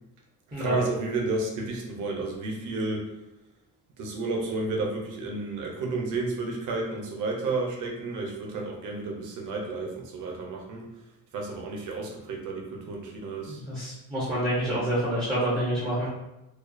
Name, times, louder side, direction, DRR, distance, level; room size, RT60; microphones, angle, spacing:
voice 1, 0.5-3.1 4.0-11.0 11.3-13.6, right 3 dB, 60° right, 0 dB, 0.6 m, -32 dB
voice 2, 13.5-16.1, right 1 dB, 15° right, -7 dB, 0.4 m, -27 dB
2.4 x 2.2 x 2.4 m, 0.93 s
cardioid pair, 170°, 35 cm